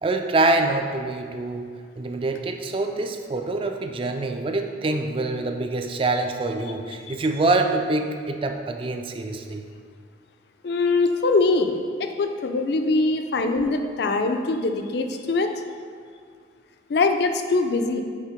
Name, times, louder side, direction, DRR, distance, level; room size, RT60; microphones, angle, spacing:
voice 1, 0.0-9.6, right 2 dB, 30° right, 5 dB, 0.3 m, -25 dB
voice 2, 10.6-15.5 16.9-18.0, left 3 dB, 60° left, 6 dB, 0.4 m, -22 dB
5.4 x 3.7 x 5.0 m, 2.1 s
head